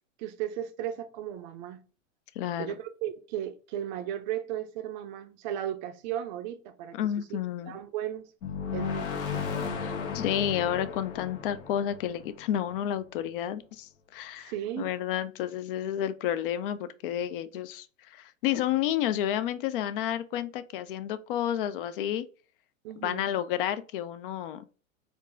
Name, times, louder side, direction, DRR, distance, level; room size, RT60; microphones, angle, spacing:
voice 1, 0.2-1.8 2.6-7.0 7.3-7.4 7.6-8.2 8.7-9.5 14.4-14.9 22.8-23.3, right 11 dB, 35° right, 0.4 m, -35 dB
voice 2, 2.4-2.7 6.9-7.8 9.7-22.2 23.0-24.6, left 11 dB, 45° left, 0.4 m, -31 dB
sound 1, 8.4-13.0, left 6 dB, 60° left, 1.3 m, -35 dB
4.4 x 2.5 x 3.0 m
supercardioid pair, 145°, 40 cm